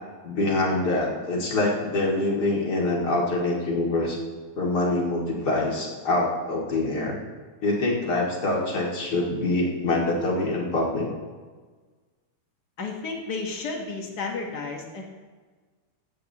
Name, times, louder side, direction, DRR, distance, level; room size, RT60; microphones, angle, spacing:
voice 1, 0.2-4.2 4.5-7.2 7.6-11.1, left 2 dB, 35° left, -3 dB, 2.4 m, -25 dB
voice 2, 12.8-15.0, left 4 dB, 75° left, 1 dB, 0.9 m, -32 dB
16.0 x 13.0 x 2.9 m, 1.4 s
omnidirectional pair, 3.7 m